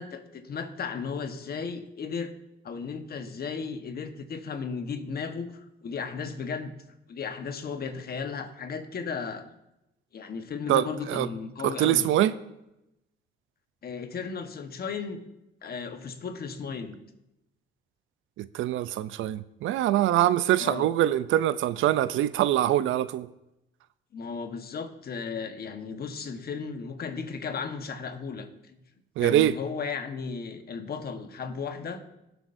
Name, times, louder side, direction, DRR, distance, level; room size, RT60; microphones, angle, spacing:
voice 1, 0.0-2.3 2.6-6.7 7.1-9.5 10.1-12.1 13.8-15.2 15.6-17.0 20.6-20.9 24.1-28.8 29.2-32.0, left 5 dB, 50° left, 7 dB, 1.2 m, -35 dB
voice 2, 10.7-11.3 11.6-12.3 18.4-23.3 29.2-29.5, right 13 dB, 80° right, 15 dB, 0.5 m, -24 dB
18.5 x 8.0 x 2.6 m, 0.89 s
cardioid pair, 90°, 20 cm